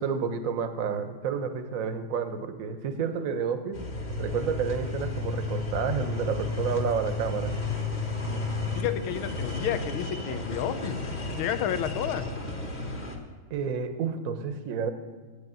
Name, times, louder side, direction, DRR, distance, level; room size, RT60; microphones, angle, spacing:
voice 1, 0.0-3.8 4.2-7.5 13.5-14.9, right 6 dB, 55° right, 9 dB, 1.0 m, -30 dB
sound 1, 3.7-13.2, left 3 dB, 25° left, 1.2 m, -33 dB
voice 2, 8.7-11.0 11.4-12.3, left 9 dB, 85° left, 11 dB, 1.6 m, -31 dB
9.3 x 8.0 x 9.1 m, 1.4 s
omnidirectional pair, 2.3 m